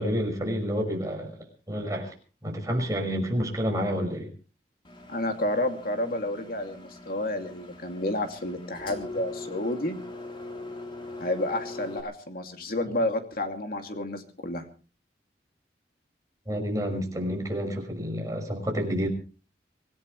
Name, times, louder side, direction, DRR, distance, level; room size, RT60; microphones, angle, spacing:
voice 1, 0.0-1.4 1.7-2.1 2.4-4.3 16.5-19.1, equal, 20° right, 2 dB, 5.7 m, -29 dB
Engine, 4.8-12.0, left 2 dB, 30° left, 3.4 m, -41 dB
voice 2, 5.1-10.0 11.2-14.7, left 1 dB, 55° left, 5 dB, 2.6 m, -30 dB
25.5 x 16.5 x 3.3 m, 0.37 s
head